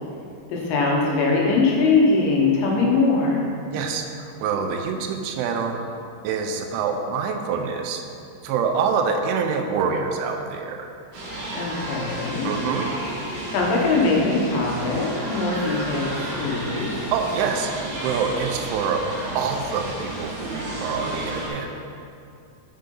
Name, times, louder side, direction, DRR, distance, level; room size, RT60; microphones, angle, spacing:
voice 1, 0.5-3.5 11.5-12.5 13.5-16.9, left 3 dB, 75° left, -3 dB, 3.3 m, -21 dB
voice 2, 3.7-5.8 6.2-8.0 8.4-10.9 12.4-12.9 17.1-17.7 18.0-19.0 19.3-21.7, right 6 dB, 85° right, 4 dB, 3.0 m, -26 dB
sound 1, 11.1-21.5, right 1 dB, 60° right, 3.2 m, -32 dB
7.7 x 6.8 x 3.8 m, 2.5 s
omnidirectional pair, 5.5 m